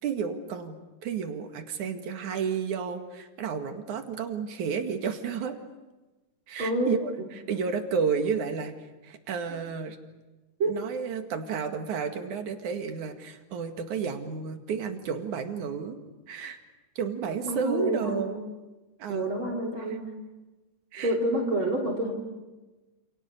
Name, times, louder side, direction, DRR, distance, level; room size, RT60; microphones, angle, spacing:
voice 1, 0.0-5.6 6.5-8.7 9.0-10.0 10.7-16.0 16.3-16.6 17.0-18.4 19.0-19.3 20.9-21.1, right 6 dB, 70° right, 6 dB, 3.4 m, -31 dB
voice 2, 6.6-6.9 10.6-10.7 17.4-18.3 19.1-20.0 21.0-22.1, right 1 dB, 40° right, 1 dB, 3.9 m, -28 dB
29.0 x 28.5 x 6.7 m, 1.1 s
omnidirectional pair, 3.6 m